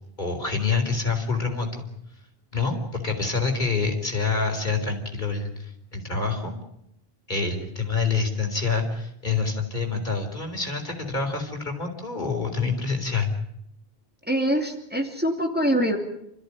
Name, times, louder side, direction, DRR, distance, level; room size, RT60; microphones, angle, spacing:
voice 1, 0.2-1.9 2.5-6.5 7.3-13.3, left 4 dB, 50° left, 3 dB, 4.1 m, -27 dB
voice 2, 14.3-16.0, equal, 10° right, 2 dB, 2.7 m, -24 dB
28.0 x 14.5 x 9.9 m, 0.79 s
omnidirectional pair, 1.0 m